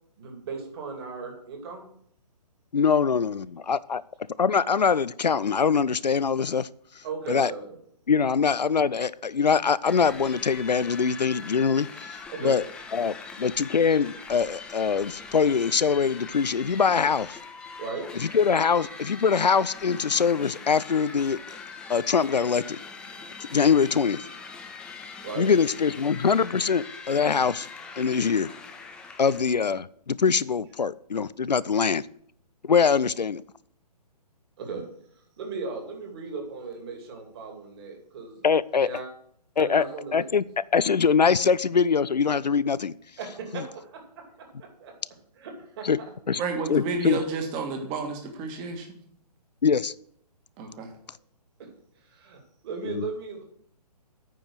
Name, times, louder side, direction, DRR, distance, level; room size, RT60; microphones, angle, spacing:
voice 1, 0.2-1.8 7.0-7.8 12.3-12.6 17.8-18.1 25.2-25.5 34.6-34.8 35.4-38.5 38.8-39.1 39.6-40.3 43.2-44.0 44.8-44.9 45.3-46.1 52.0-53.4, right 4 dB, 40° right, 3 dB, 2.5 m, -36 dB
voice 2, 2.7-4.0 4.4-6.7 7.3-7.5 8.1-12.6 12.9-17.4 18.1-21.4 21.9-22.8 23.5-24.2 25.4-27.7 28.0-28.5 29.2-32.1 32.6-33.4 38.4-38.9 39.6-39.8 40.1-40.4 40.7-42.9 43.5-43.6 45.8-46.0 46.3-46.4 46.7-47.2 49.6-49.9 52.9-53.1, left 6 dB, 85° left, 19 dB, 0.4 m, -23 dB
sound 1, 9.9-29.4, left 5 dB, 5° left, 0.4 m, -42 dB
voice 3, 46.4-49.0 50.6-50.9, right 3 dB, 20° right, 4 dB, 1.6 m, -31 dB
9.0 x 5.2 x 7.8 m, 0.66 s
figure-of-eight pair, 130°, 21 cm